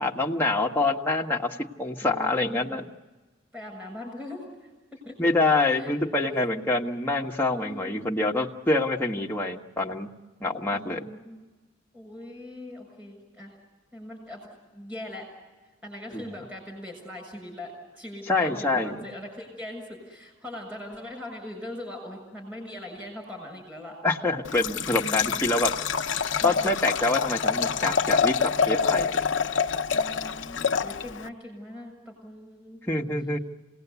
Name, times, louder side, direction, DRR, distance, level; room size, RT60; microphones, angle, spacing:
voice 1, 0.0-2.9 5.2-10.1 10.4-11.1 16.1-16.2 18.3-19.0 24.0-25.7 26.4-29.2 32.9-33.4, left 2 dB, 10° left, -1 dB, 1.4 m, -26 dB
voice 2, 2.0-2.8 3.5-5.1 5.7-5.9 6.2-6.3 7.5-8.1 10.7-11.4 11.9-13.5 13.9-15.3 15.8-24.0 25.0-25.5 26.3-26.8 29.9-32.8, left 1 dB, 10° right, 1 dB, 6.9 m, -41 dB
Liquid, 24.4-31.3, left 6 dB, 70° left, 0.7 m, -26 dB
28.0 x 19.0 x 8.2 m, 1.3 s
head